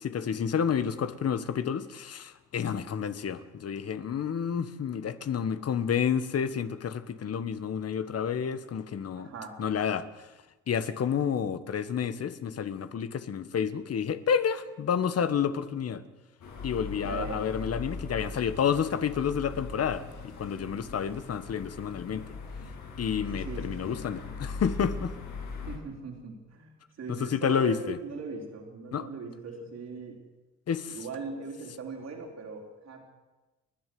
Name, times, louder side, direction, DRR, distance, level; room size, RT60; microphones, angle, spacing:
voice 1, 0.0-9.3 9.6-10.1 10.7-16.0 16.6-22.2 23.0-25.1 27.1-28.0 28.9-29.0 30.7-31.0, left 7 dB, 55° left, 1.5 m, -30 dB
voice 2, 9.1-9.6 17.0-17.5 23.4-24.2 25.6-30.2 30.9-33.0, right 4 dB, 60° right, 4.4 m, -40 dB
sound 1, 16.4-25.8, left 4 dB, 70° left, 6.2 m, -40 dB
30.0 x 11.0 x 7.8 m
cardioid pair, 90°, 30 cm